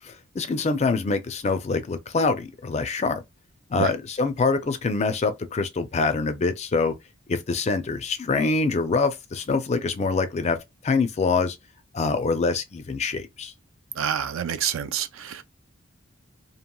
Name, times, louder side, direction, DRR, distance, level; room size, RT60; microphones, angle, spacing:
voice 1, 0.0-3.2 3.7-7.0 7.3-10.6 10.8-11.6 11.9-13.5, left 4 dB, 30° left, 0.4 m, -25 dB
voice 2, 14.0-15.4, right 8 dB, 75° right, 0.4 m, -27 dB
2.9 x 2.9 x 2.2 m
head